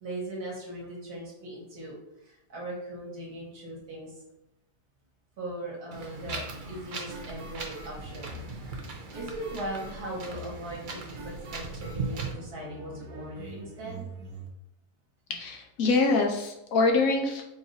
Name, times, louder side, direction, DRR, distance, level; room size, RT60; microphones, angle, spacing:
voice 1, 0.0-4.1 5.4-8.3 9.1-14.1, right 1 dB, 70° right, -4 dB, 1.8 m, -39 dB
Wind, 5.9-12.3, right 3 dB, 55° right, 0.5 m, -39 dB
sound 1, 6.2-14.5, right 1 dB, 85° right, 1.4 m, -45 dB
voice 2, 15.3-17.4, left 3 dB, 65° left, 2 dB, 1.1 m, -25 dB
4.8 x 2.6 x 4.1 m, 0.90 s
omnidirectional pair, 1.7 m